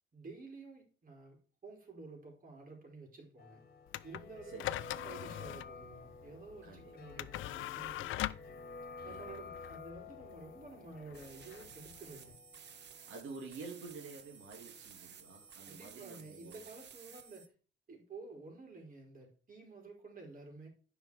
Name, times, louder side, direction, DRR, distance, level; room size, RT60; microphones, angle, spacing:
voice 1, 0.1-1.4 1.6-3.6 4.0-4.6 5.0-8.3 9.0-12.4 15.6-17.5 17.9-20.7, right 3 dB, 45° right, 4.3 m, -51 dB
sound 1, 3.4-15.1 15.4-15.5, left 4 dB, 50° left, 1.6 m, -52 dB
sound 2, 3.9-12.4, left 15 dB, 80° left, 0.5 m, -43 dB
voice 2, 4.4-4.8 6.6-7.2 9.1-9.5 12.8-16.6, right 4 dB, 80° right, 2.3 m, -50 dB
sound 3, 11.1-17.5, right 7 dB, 60° right, 1.2 m, -55 dB
9.8 x 5.5 x 4.8 m
cardioid pair, 90°, 20 cm